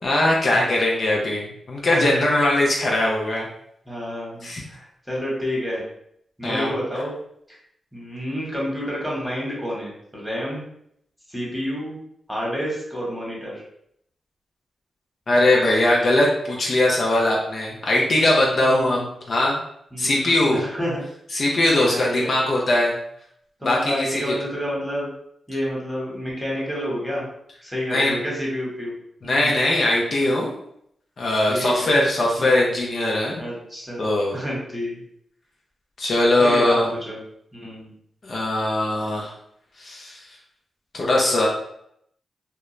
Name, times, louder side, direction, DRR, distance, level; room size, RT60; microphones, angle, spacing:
voice 1, 0.0-3.5 4.4-4.6 6.4-6.7 15.3-19.6 20.0-20.6 21.3-23.0 23.6-24.3 27.9-28.2 29.2-30.5 31.2-33.4 34.0-34.4 36.0-36.9 38.2-39.3 39.8-40.2 40.9-41.5, left 1 dB, 60° left, -2 dB, 0.6 m, -20 dB
voice 2, 1.9-2.3 3.9-5.8 6.4-7.1 7.9-10.6 11.3-12.0 12.3-13.6 18.6-19.0 19.9-21.0 21.8-22.3 23.6-25.1 25.5-27.2 27.6-28.9 29.4-29.5 31.5-32.0 32.4-32.5 33.4-34.1 34.3-35.0 36.4-37.2 37.5-37.9, equal, 5° right, -4 dB, 1.2 m, -29 dB
2.2 x 2.1 x 3.1 m, 0.72 s
cardioid pair, 50°, 0 cm